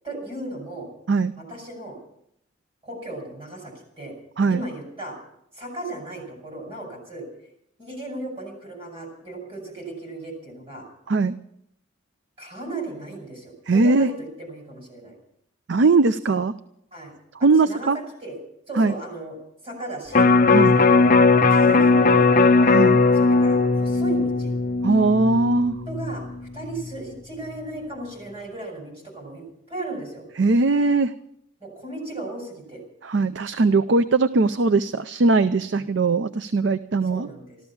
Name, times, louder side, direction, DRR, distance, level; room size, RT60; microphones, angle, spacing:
voice 1, 0.0-0.9 1.4-2.0 2.8-4.1 4.5-5.2 5.5-7.3 7.8-10.8 12.4-15.1 16.9-17.1 17.4-18.4 18.7-19.4 19.6-20.3 20.6-21.0 21.5-22.3 23.1-24.5 25.9-26.2 26.5-30.2 31.6-32.8 35.7-35.9 37.1-37.6, right 2 dB, 30° right, 1 dB, 5.5 m, -36 dB
voice 2, 4.4-4.7 11.1-11.4 13.7-14.1 15.7-16.5 17.4-18.0 18.8-19.0 20.5-20.8 22.7-23.0 24.8-25.8 30.4-31.1 33.0-37.3, right 3 dB, 60° right, 13 dB, 0.5 m, -20 dB
Electric guitar, 20.1-26.4 26.7-26.8, left 4 dB, 40° left, 0.7 m, -18 dB
14.0 x 13.5 x 7.1 m, 0.76 s
head